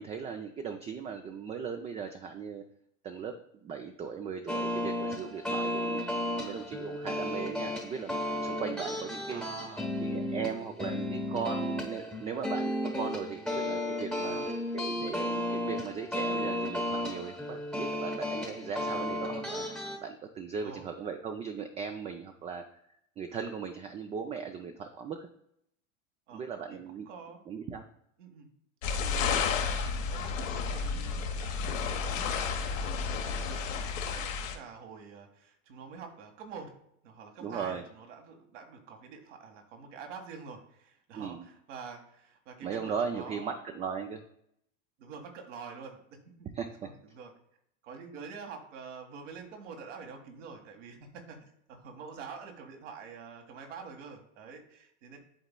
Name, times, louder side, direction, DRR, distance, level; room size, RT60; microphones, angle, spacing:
voice 1, 0.0-2.6 3.0-9.4 10.0-14.4 14.7-19.7 20.0-22.6 23.2-25.3 26.3-27.1 27.5-27.8 37.4-37.8 41.1-41.5 42.6-44.2 46.5-46.9, right 6 dB, 20° right, 5 dB, 0.4 m, -38 dB
sound 1, 4.5-20.0, left 1 dB, ahead, 0.9 m, -34 dB
voice 2, 9.3-9.9 14.2-14.5 20.6-20.9 26.3-26.4 26.7-27.4 28.2-28.5 29.0-36.7 37.0-43.6 45.0-46.2 46.6-47.3 47.8-55.2, right 5 dB, 70° right, 4 dB, 1.7 m, -47 dB
sound 2, 28.8-34.5, left 5 dB, 85° left, 1.1 m, -31 dB
11.0 x 4.0 x 2.2 m, 0.73 s
hypercardioid pair, 105°, 38 cm